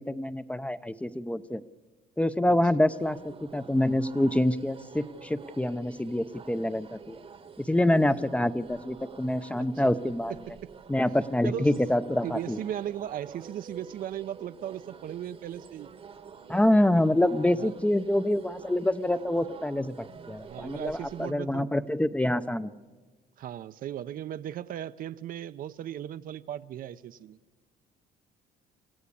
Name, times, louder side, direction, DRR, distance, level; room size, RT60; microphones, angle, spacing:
voice 1, 0.0-1.6 2.2-7.2 7.6-10.3 10.9-12.6 16.5-22.7, left 1 dB, 5° left, 0.6 m, -26 dB
sound 1, 2.9-21.3, right 6 dB, 35° right, 1.1 m, -48 dB
voice 2, 12.2-15.9 17.6-17.7 20.4-21.7 23.4-27.4, right 11 dB, 55° right, 0.6 m, -37 dB
26.0 x 15.5 x 8.5 m
cardioid pair, 110°, 17 cm